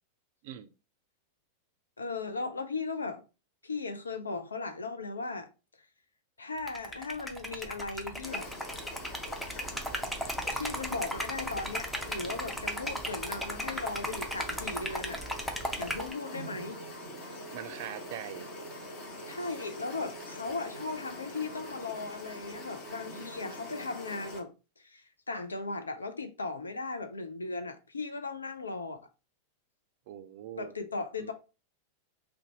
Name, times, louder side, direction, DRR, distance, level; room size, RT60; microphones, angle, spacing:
voice 1, 2.0-3.2 3.6-5.5 6.4-8.5 10.5-15.2 15.8-16.8 19.3-24.5 24.8-29.0 30.5-31.3, left 3 dB, 75° left, 0.4 m, -37 dB
Liquid, 6.6-16.1, equal, ahead, 0.5 m, -36 dB
sound 1, 8.2-24.4, left 1 dB, 40° left, 1.1 m, -44 dB
voice 2, 17.5-18.5 30.1-30.7 31.2-31.3, right 11 dB, 50° right, 0.3 m, -42 dB
2.5 x 2.2 x 3.9 m
figure-of-eight pair, 90°, 0 cm